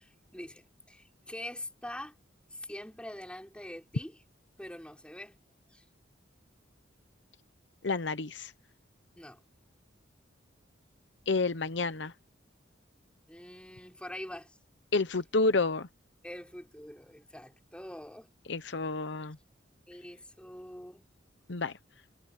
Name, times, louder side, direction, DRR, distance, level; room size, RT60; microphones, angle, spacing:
voice 1, 0.0-2.1 2.5-4.2 4.6-5.4 5.7-5.8 9.2-9.4 13.3-14.6 16.2-18.3 19.9-21.1, left 1 dB, 5° left, 4.5 m, -44 dB
voice 2, 7.8-8.5 11.3-12.1 14.9-15.9 18.5-19.4 21.5-21.7, left 3 dB, 65° left, 0.9 m, -29 dB
head